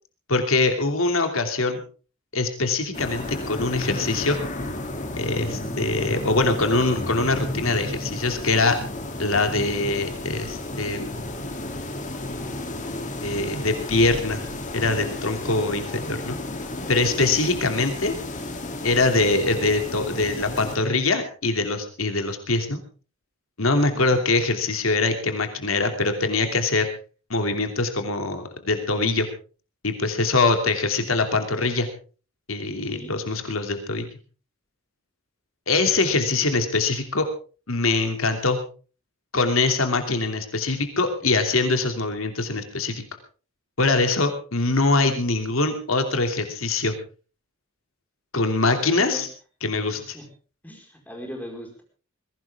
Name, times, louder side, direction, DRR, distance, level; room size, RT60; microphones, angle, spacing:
voice 1, 0.3-1.8 2.3-4.4 5.2-8.8 9.2-11.2 13.2-14.4 14.7-16.4 16.9-18.2 18.8-22.8 23.6-26.9 27.3-29.3 29.8-31.9 32.5-34.1 35.7-37.3 37.7-38.6 39.3-43.0 43.8-47.0 48.3-49.3 49.6-50.2, left 3 dB, 80° left, 6 dB, 2.8 m, -23 dB
sound 1, 2.9-20.8, left 1 dB, 40° left, 3.0 m, -32 dB
voice 2, 23.7-24.2 32.8-33.1 36.3-36.5 48.5-49.2 49.9-50.3 50.6-51.8, equal, 10° left, 2 dB, 5.0 m, -40 dB
21.5 x 16.5 x 3.6 m, 0.37 s
head